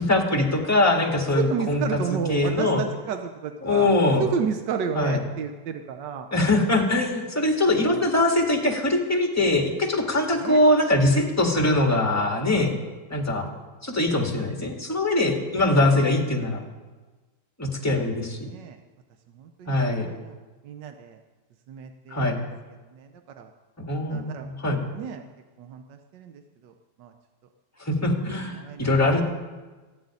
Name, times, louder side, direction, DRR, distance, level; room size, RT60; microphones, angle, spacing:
voice 1, 0.0-2.8 3.6-4.2 5.0-5.2 6.3-12.7 13.1-13.5 13.8-16.6 17.6-18.5 19.7-20.1 22.1-22.4 23.8-24.8 27.8-29.2, left 2 dB, 10° left, 2 dB, 1.8 m, -22 dB
voice 2, 1.3-6.3 7.7-8.0 10.4-10.6 18.0-18.2 18.4-18.8 19.3-20.4 20.6-21.2 21.7-22.4 22.9-23.5 24.1-24.5 24.9-25.2 25.6-26.7 27.0-27.1 28.6-28.9, right 7 dB, 85° right, 6 dB, 1.5 m, -32 dB
14.0 x 7.8 x 9.8 m, 1.3 s
omnidirectional pair, 1.8 m